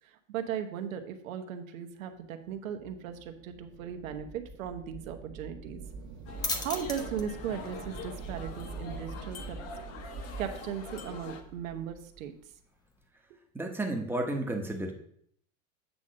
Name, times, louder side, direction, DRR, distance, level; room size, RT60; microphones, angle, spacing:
voice 1, 0.3-5.8 6.6-9.6 10.4-12.3 13.3-13.4, right 8 dB, 75° right, 7 dB, 1.2 m, -37 dB
sound 1, 2.2-12.3, right 4 dB, 40° right, 1.1 m, -45 dB
sound 2, 5.8-13.1, left 2 dB, 10° left, 0.7 m, -43 dB
sound 3, 6.3-11.4, left 4 dB, 40° left, 1.1 m, -45 dB
voice 2, 13.5-14.9, right 2 dB, 5° right, 2 dB, 1.1 m, -32 dB
8.4 x 3.6 x 6.5 m, 0.66 s
supercardioid pair, 120°, 40 cm